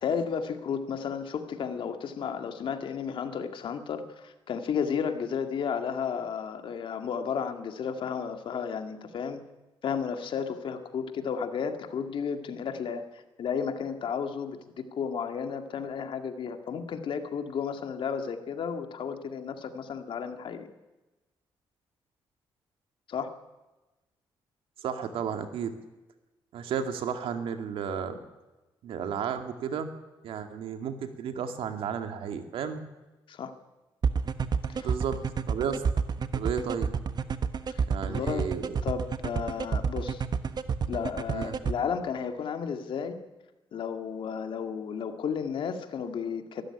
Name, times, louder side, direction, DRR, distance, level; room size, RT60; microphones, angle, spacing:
voice 1, 0.0-9.4 9.8-20.7 23.1-23.3 33.3-33.5 34.7-34.9 37.7-40.2 40.9-43.2 43.7-46.6, left 6 dB, 70° left, 7 dB, 2.1 m, -33 dB
voice 2, 24.8-25.7 26.5-28.2 28.8-29.9 30.2-32.8 34.8-35.2 35.5-35.8 36.3-36.9 37.9-38.7 41.3-41.5, right 7 dB, 85° right, 7 dB, 2.2 m, -33 dB
sound 1, 34.0-41.7, right 6 dB, 50° right, 1.3 m, -28 dB
23.0 x 13.0 x 10.0 m, 1.1 s
cardioid pair, 85°, 9 cm